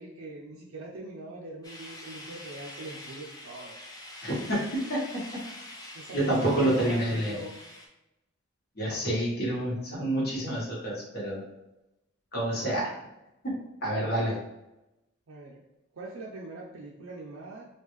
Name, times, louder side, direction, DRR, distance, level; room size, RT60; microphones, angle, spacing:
voice 1, 0.0-3.7 5.9-7.6 15.3-15.6 15.9-17.7, right 2 dB, 80° right, -4 dB, 0.5 m, -42 dB
sound 1, 1.6-7.9, left 1 dB, 20° left, 0.5 m, -45 dB
voice 2, 4.2-5.4 6.1-7.4 8.7-11.4 12.3-12.9 13.4-14.4, right 1 dB, 50° left, -5 dB, 1.3 m, -28 dB
3.5 x 2.3 x 3.1 m, 0.93 s
head